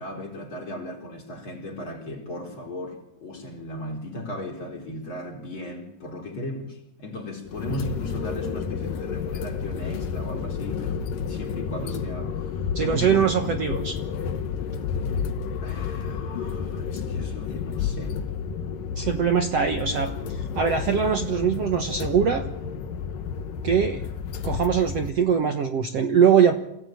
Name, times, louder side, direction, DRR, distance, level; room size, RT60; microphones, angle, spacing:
voice 1, 0.0-13.3 15.6-18.2, left 1 dB, 35° left, 4.8 m, -36 dB
sound 1, 7.5-25.1, left 6 dB, 75° left, 3.0 m, -31 dB
voice 2, 12.8-14.0 19.0-22.5 23.6-24.1 24.4-26.6, right 7 dB, 55° right, 2.0 m, -22 dB
28.0 x 17.5 x 9.2 m
omnidirectional pair, 4.1 m